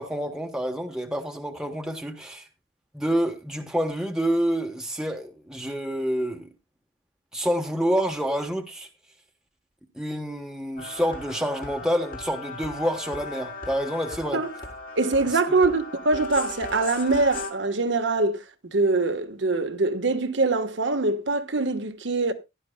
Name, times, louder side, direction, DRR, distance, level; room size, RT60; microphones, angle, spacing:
voice 1, 0.0-2.5 2.9-6.5 7.3-8.9 10.0-14.4, equal, 5° right, 1.0 m, -28 dB
sound 1, 10.8-17.5, left 3 dB, 50° left, 2.1 m, -37 dB
voice 2, 15.0-18.4 18.7-22.3, right 3 dB, 80° right, 1.2 m, -23 dB
16.0 x 11.5 x 2.2 m
head